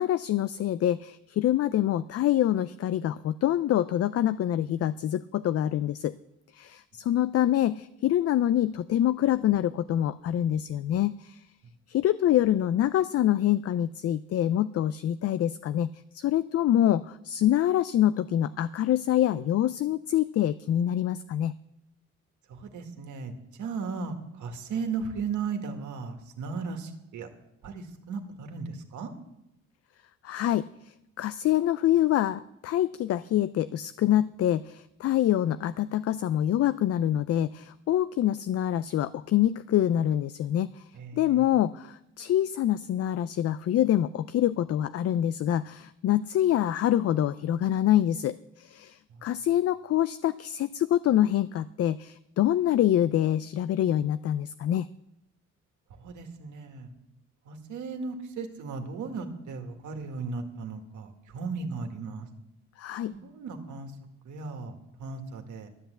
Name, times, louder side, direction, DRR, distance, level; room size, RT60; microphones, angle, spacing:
voice 1, 0.0-6.1 6.5-11.4 11.9-15.9 16.1-21.6 30.2-30.7 31.2-40.8 41.2-54.9 62.8-63.1, left 12 dB, 55° left, 14 dB, 0.4 m, -25 dB
voice 2, 22.5-27.3 27.6-29.1 40.9-41.5 49.1-49.2 56.0-56.9 57.5-62.3 63.1-63.9 64.2-65.7, right 5 dB, 80° right, 5 dB, 1.9 m, -36 dB
12.5 x 8.1 x 7.9 m, 0.88 s
cardioid pair, 90°, 30 cm